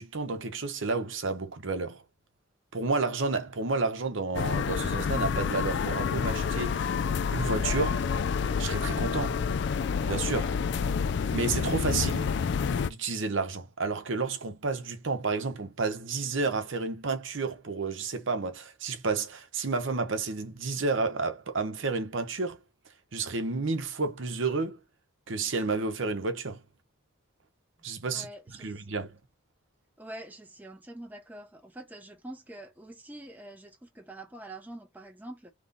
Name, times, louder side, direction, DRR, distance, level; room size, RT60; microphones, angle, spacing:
voice 1, 0.0-2.0 2.7-6.8 7.3-8.0 8.6-9.4 10.0-10.5 11.3-12.3 12.8-22.6 23.1-24.8 25.3-26.6 27.8-28.3 28.6-29.1, right 3 dB, 65° right, 0.9 m, -31 dB
sound 1, 4.3-12.9, left 6 dB, 55° left, 0.3 m, -28 dB
voice 2, 28.1-28.9 30.0-35.5, right 1 dB, 10° right, 0.7 m, -45 dB
3.8 x 3.0 x 4.0 m
head